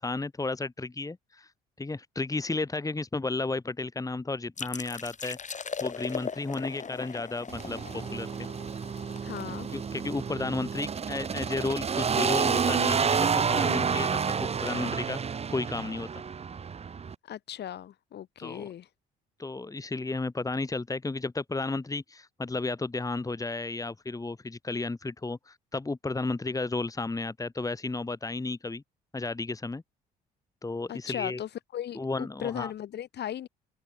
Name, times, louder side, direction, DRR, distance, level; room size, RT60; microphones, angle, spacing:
voice 1, 0.0-1.5 1.8-8.3 9.7-16.2 18.4-18.7 19.4-28.8 29.1-29.8 30.6-31.4 32.0-32.7, left 3 dB, 20° left, 1.8 m, -33 dB
Water Pouring, 4.6-10.1, left 6 dB, 40° left, 4.5 m, -39 dB
sound 1, 7.5-17.1, right 6 dB, 35° right, 0.8 m, -29 dB
voice 2, 9.2-9.7 17.3-18.9 30.9-33.5, left 11 dB, 60° left, 4.1 m, -37 dB
supercardioid pair, 60°, 19 cm